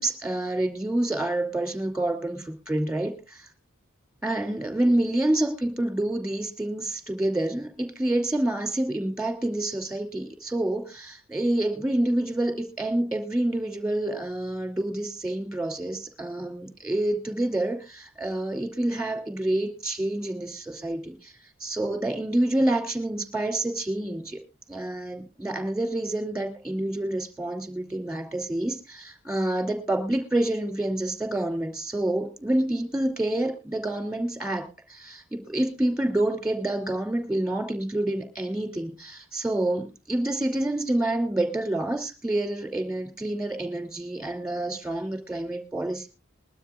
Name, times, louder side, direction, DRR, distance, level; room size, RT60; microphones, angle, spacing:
voice 1, 0.0-3.5 4.2-21.3 21.6-24.4 24.7-46.1, right 1 dB, 5° right, 5 dB, 2.7 m, -28 dB
21.5 x 12.5 x 2.4 m, 0.29 s
head